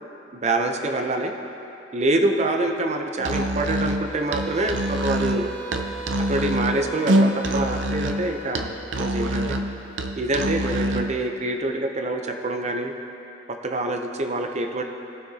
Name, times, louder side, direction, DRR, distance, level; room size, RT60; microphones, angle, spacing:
voice 1, 0.3-1.3 1.9-5.5 6.3-9.6 10.2-12.9 13.6-14.8, right 2 dB, 40° right, 4 dB, 0.6 m, -25 dB
Musical instrument, 3.2-11.2, right 1 dB, 80° right, 0.6 m, -25 dB
sound 1, 4.0-8.6, right 3 dB, ahead, 0.8 m, -37 dB
18.0 x 6.2 x 2.8 m, 2.8 s
head